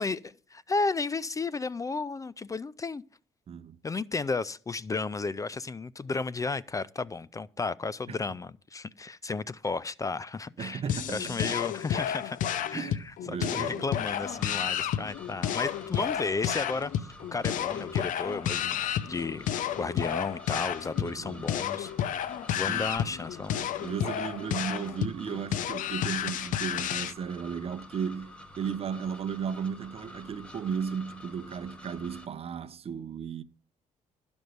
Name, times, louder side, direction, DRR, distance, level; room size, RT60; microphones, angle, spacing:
voice 1, 0.0-3.0 3.8-10.8 11.1-12.4 12.7-12.9 13.3-19.5 19.8-21.9 22.6-23.6, left 4 dB, 25° left, 0.4 m, -33 dB
voice 2, 10.6-11.5 12.7-13.9 17.8-17.9 21.0-21.5 22.7-22.9 23.5-33.4, right 7 dB, 45° right, 0.7 m, -35 dB
sound 1, 10.9-27.1, left 10 dB, 75° left, 0.7 m, -31 dB
sound 2, 14.1-32.3, left 1 dB, 10° left, 2.0 m, -49 dB
12.5 x 5.3 x 7.9 m
cardioid pair, 95°, 14 cm